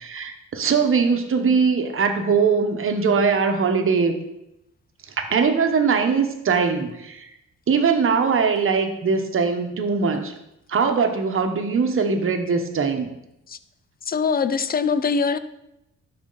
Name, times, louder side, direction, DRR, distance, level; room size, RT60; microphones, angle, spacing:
voice 1, 0.0-4.1 5.3-7.3 7.7-10.3 10.7-13.1, right 5 dB, 45° right, 6 dB, 1.1 m, -21 dB
voice 2, 14.1-15.4, left 5 dB, 30° left, 13 dB, 0.5 m, -22 dB
12.0 x 4.4 x 4.0 m, 0.87 s
cardioid pair, 90°, 30 cm